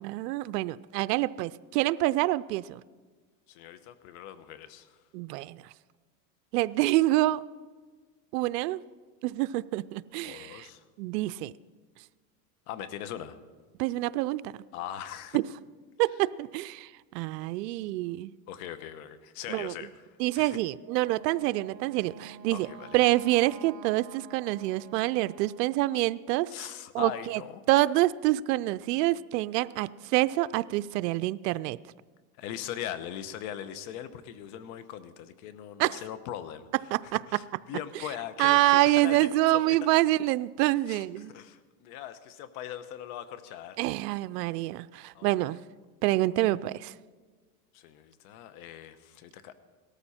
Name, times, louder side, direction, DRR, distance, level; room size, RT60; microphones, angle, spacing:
voice 1, 0.0-2.8 5.1-5.6 6.5-7.4 8.3-8.8 9.2-10.7 11.0-11.5 13.8-14.6 15.3-15.4 16.0-18.3 19.5-19.7 20.2-22.7 22.9-26.7 26.9-27.4 27.7-31.8 35.8-36.0 36.9-37.4 38.4-41.3 43.8-45.6 46.0-46.9, right 17 dB, 85° right, 16 dB, 0.6 m, -27 dB
voice 2, 3.5-5.0 10.2-10.8 12.7-13.4 14.7-15.4 18.5-20.6 22.5-23.0 26.5-27.6 32.4-36.7 37.0-39.6 40.9-43.8 45.1-45.5 47.7-49.5, left 10 dB, 65° left, 13 dB, 1.1 m, -40 dB
Wind instrument woodwind instrument, 20.8-25.8, right 7 dB, 60° right, 1.6 m, -49 dB
17.5 x 13.5 x 4.3 m, 1.4 s
supercardioid pair, 135°, 47 cm